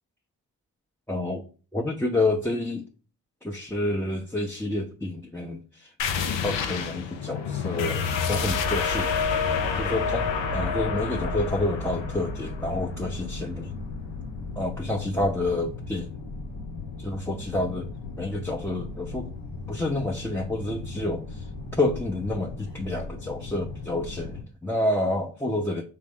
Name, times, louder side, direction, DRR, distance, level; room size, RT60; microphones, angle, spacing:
voice 1, 1.1-1.4 1.7-2.9 3.4-5.9 6.4-9.1 9.8-13.7 14.6-16.1 17.0-19.3 19.7-21.5 21.8-25.8, left 2 dB, 5° left, 0.6 m, -29 dB
sound 1, 6.0-15.2, left 5 dB, 90° left, 0.6 m, -29 dB
sound 2, 9.1-24.4, left 3 dB, 70° left, 1.1 m, -37 dB
3.7 x 3.2 x 3.6 m
supercardioid pair, 45°, 43 cm